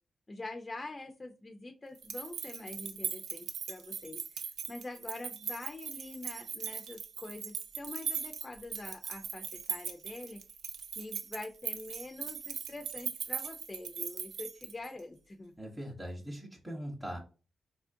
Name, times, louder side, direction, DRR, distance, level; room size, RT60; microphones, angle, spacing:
voice 1, 0.3-10.4 11.0-15.5, left 2 dB, 25° left, 3 dB, 0.5 m, -45 dB
sound 1, 1.9-15.0, right 7 dB, 85° right, 0.5 m, -40 dB
voice 2, 15.6-17.2, equal, 10° right, -3 dB, 0.9 m, -41 dB
4.2 x 2.5 x 2.6 m, 0.34 s
cardioid pair, 100°, 0 cm